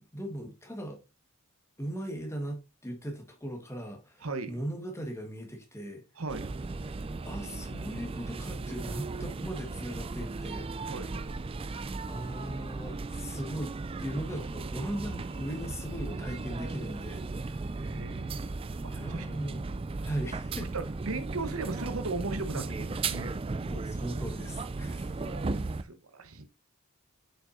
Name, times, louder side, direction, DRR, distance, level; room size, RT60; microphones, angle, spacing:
voice 1, 0.1-1.0 1.8-6.0 7.2-10.7 12.1-17.6 18.9-19.7 20.0-20.7 23.6-25.3, right 1 dB, 10° left, 1.4 m, -39 dB
voice 2, 4.2-4.6 6.2-6.5 10.9-11.4 17.7-18.5 18.8-19.3 20.7-23.3 25.0-26.5, right 3 dB, 75° right, 1.0 m, -37 dB
sound 1, 6.3-25.8, right 3 dB, 25° right, 0.3 m, -36 dB
7.3 x 5.7 x 2.6 m
head